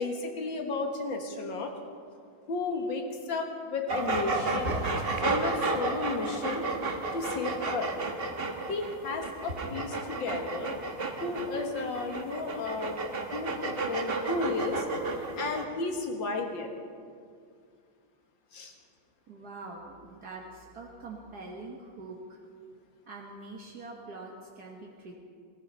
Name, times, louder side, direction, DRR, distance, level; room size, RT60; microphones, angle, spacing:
voice 1, 0.0-1.7 2.5-4.8 5.2-6.7 7.1-7.9 8.7-13.0 13.3-16.7 18.5-18.7, left 3 dB, 80° left, 3 dB, 2.3 m, -33 dB
sound 1, 3.9-15.6, right 3 dB, 35° right, 1.2 m, -32 dB
voice 2, 19.3-22.4 23.1-25.1, right 3 dB, 60° right, -2 dB, 1.9 m, -44 dB
18.5 x 14.0 x 5.5 m, 2.2 s
omnidirectional pair, 2.0 m